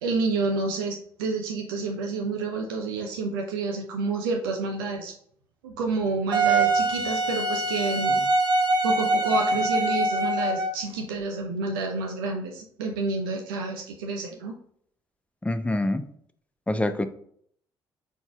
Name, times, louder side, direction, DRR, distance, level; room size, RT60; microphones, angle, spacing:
voice 1, 0.0-5.1 5.6-8.3 8.8-14.6, right 3 dB, 75° right, 2 dB, 0.5 m, -29 dB
Wind instrument woodwind instrument, 6.3-10.8, right 2 dB, 40° right, 1.0 m, -23 dB
voice 2, 15.4-16.1 16.7-17.0, left 1 dB, 10° left, 9 dB, 0.6 m, -25 dB
5.5 x 4.0 x 2.3 m, 0.64 s
figure-of-eight pair, 45°, 12 cm